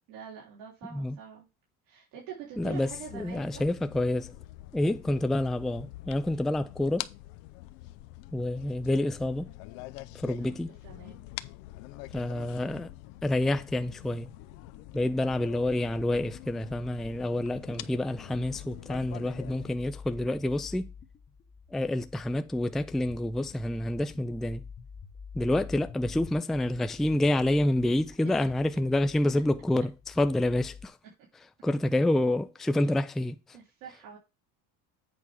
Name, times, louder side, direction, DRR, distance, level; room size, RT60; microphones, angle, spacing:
voice 1, 0.1-1.5 1.9-3.6 10.4-10.5 10.8-11.3 33.5-34.2, right 7 dB, 90° right, 3.6 m, -45 dB
sound 1, 2.5-19.8, left 17 dB, 85° left, 0.7 m, -45 dB
voice 2, 2.6-4.4 4.7-7.1 8.3-9.5 10.1-10.7 12.1-12.9 13.2-14.3 14.9-20.9 21.7-24.6 25.3-31.0 31.6-33.6, left 1 dB, ahead, 0.4 m, -28 dB
sound 2, 17.8-30.9, left 6 dB, 25° left, 1.1 m, -49 dB
8.4 x 3.5 x 6.2 m
cardioid pair, 120°, 38 cm